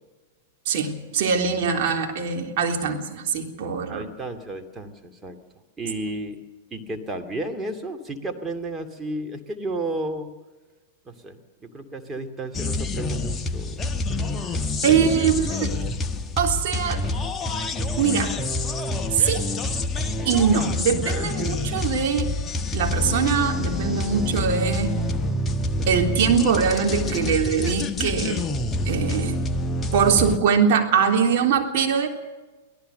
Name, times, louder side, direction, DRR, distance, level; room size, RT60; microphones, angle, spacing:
voice 1, 0.7-4.0 14.8-15.7 16.4-17.0 18.0-18.3 19.1-19.4 20.3-22.3 22.7-25.0 25.9-28.4 28.9-29.4 29.9-32.1, right 6 dB, 50° right, 2 dB, 3.5 m, -22 dB
voice 2, 3.9-5.4 5.8-6.4 6.7-10.3 11.1-13.8 14.9-15.3, right 2 dB, 15° right, 5 dB, 2.6 m, -33 dB
sound 1, 12.5-30.4, left 2 dB, 20° left, 1.2 m, -27 dB
24.5 x 17.5 x 6.7 m, 1.2 s
figure-of-eight pair, 100°, 0 cm